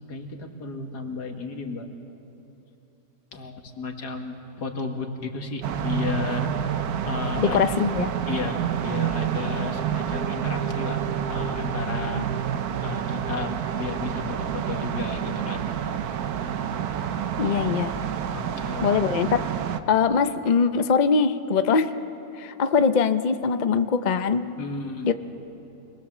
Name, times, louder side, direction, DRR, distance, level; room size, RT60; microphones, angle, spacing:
voice 1, 0.1-1.9 3.3-6.5 7.1-7.6 8.3-11.0 11.3-12.2 12.8-15.6 18.3-18.9 24.6-25.1, left 4 dB, 80° left, 4 dB, 2.3 m, -33 dB
sound 1, 5.6-19.8, right 9 dB, 70° right, 1.3 m, -28 dB
voice 2, 7.4-8.1 12.1-12.3 17.4-17.9 18.8-19.5 19.9-21.9 22.4-24.5 25.0-25.1, left 5 dB, 50° left, 10 dB, 0.5 m, -22 dB
26.5 x 20.5 x 7.3 m, 2.9 s
omnidirectional pair, 1.7 m